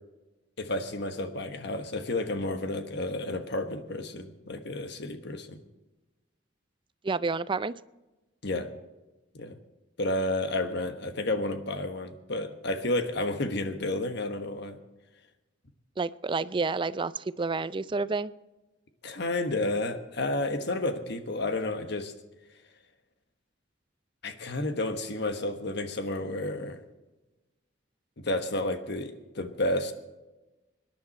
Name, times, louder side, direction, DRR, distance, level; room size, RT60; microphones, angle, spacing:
voice 1, 0.6-5.6 8.4-8.7 9.3-9.6 10.0-14.8 19.0-22.1 24.2-26.8 28.2-29.9, left 2 dB, 65° left, 8 dB, 1.3 m, -31 dB
voice 2, 7.0-7.7 16.0-18.3, right 4 dB, 25° right, 17 dB, 0.4 m, -29 dB
24.5 x 10.5 x 4.3 m, 1.1 s
head